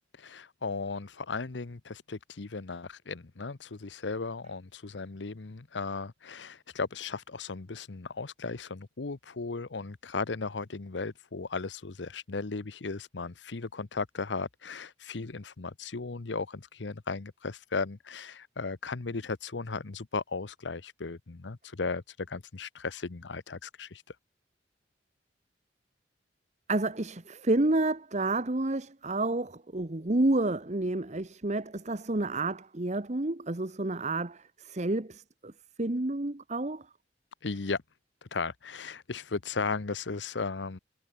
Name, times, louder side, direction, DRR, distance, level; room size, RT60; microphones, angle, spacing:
voice 1, 0.1-24.2 37.4-37.8 38.2-40.8, left 4 dB, 85° left, 0.9 m, -36 dB
voice 2, 26.7-34.4 34.7-35.2 35.8-36.8, right 2 dB, 40° right, 1.2 m, -29 dB
head